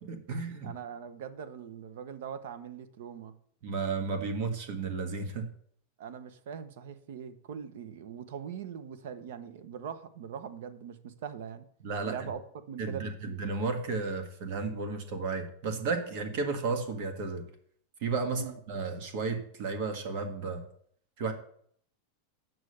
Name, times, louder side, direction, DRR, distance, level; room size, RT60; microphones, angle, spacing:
voice 1, 0.0-0.7 3.6-5.5 11.8-12.3 12.8-17.5 18.0-20.6 21.2-21.3, right 4 dB, 50° right, 6 dB, 1.6 m, -33 dB
voice 2, 0.6-3.3 6.0-11.7 12.0-12.4 12.7-13.4 18.3-18.5, right 8 dB, 65° right, 12 dB, 1.0 m, -41 dB
8.6 x 6.3 x 6.5 m, 0.62 s
supercardioid pair, 170°, 0 cm